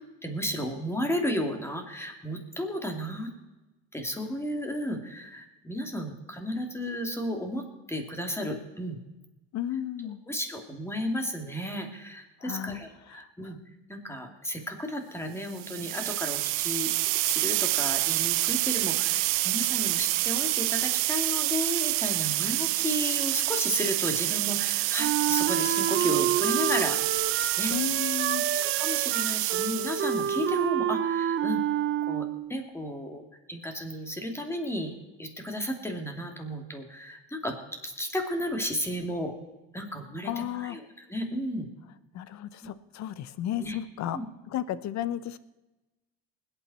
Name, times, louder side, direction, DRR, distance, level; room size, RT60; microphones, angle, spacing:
voice 1, 0.2-3.3 3.9-9.0 10.3-13.6 13.9-16.9 17.3-27.3 27.6-27.7 28.5-31.6 32.1-34.9 35.2-37.5 37.8-39.3 39.7-41.7 43.6-43.8 44.1-44.3, equal, 5° left, 3 dB, 2.7 m, -33 dB
voice 2, 9.5-10.2 12.4-12.8 27.7-28.5 40.2-40.8 42.1-44.2 44.5-45.4, left 11 dB, 55° left, 16 dB, 0.9 m, -33 dB
sound 1, 15.5-30.4, right 22 dB, 80° right, 0.5 m, -28 dB
Wind instrument woodwind instrument, 25.0-32.5, right 9 dB, 35° right, 0.8 m, -29 dB
20.5 x 9.0 x 4.3 m, 1.1 s
supercardioid pair, 85°, 33 cm